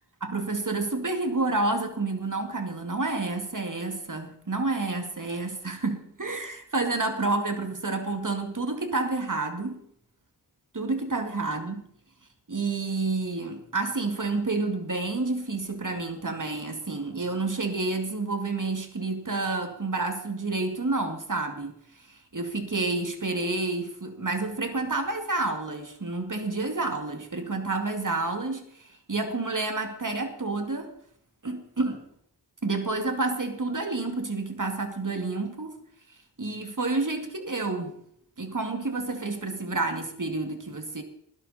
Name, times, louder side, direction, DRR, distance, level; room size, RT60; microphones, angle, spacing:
voice 1, 0.2-9.8 10.7-11.7 12.5-30.9 31.4-32.0 32.6-35.7 36.4-38.0 38.4-41.0, right 3 dB, 45° right, 5 dB, 2.4 m, -29 dB
19.5 x 12.0 x 4.3 m, 0.70 s
cardioid pair, 40°, 42 cm